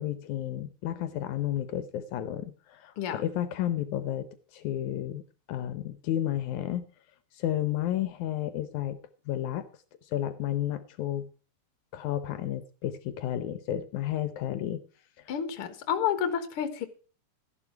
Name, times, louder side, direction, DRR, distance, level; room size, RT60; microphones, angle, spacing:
voice 1, 0.0-5.2 5.5-6.8 7.3-9.0 9.3-9.7 10.1-11.3 11.9-14.8, left 12 dB, 75° left, 13 dB, 2.2 m, -32 dB
voice 2, 15.3-16.9, left 8 dB, 55° left, 10 dB, 2.0 m, -30 dB
13.5 x 11.0 x 4.6 m, 0.38 s
omnidirectional pair, 3.5 m